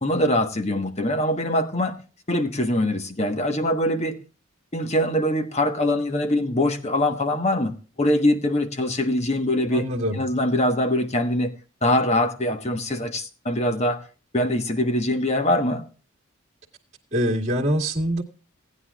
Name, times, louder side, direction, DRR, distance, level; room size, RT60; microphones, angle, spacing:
voice 1, 0.0-1.9 2.3-4.2 4.7-9.9 10.1-11.5 11.8-14.0 14.3-15.8, left 1 dB, 30° left, 1.2 m, -23 dB
voice 2, 9.7-10.2 17.1-18.2, equal, 35° right, 1.9 m, -24 dB
18.0 x 9.7 x 2.4 m
head